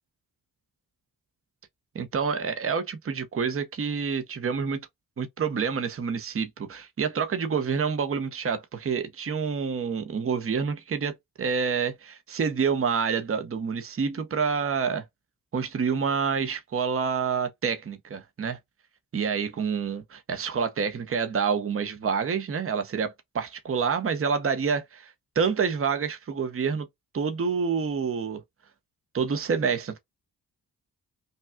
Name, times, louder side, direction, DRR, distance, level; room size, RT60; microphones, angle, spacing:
voice 1, 1.9-4.8 5.2-15.0 15.5-18.6 19.1-26.9 27.1-28.4 29.1-30.0, right 6 dB, 35° right, 0.8 m, -28 dB
5.3 x 2.3 x 2.2 m
cardioid pair, 90°, 38 cm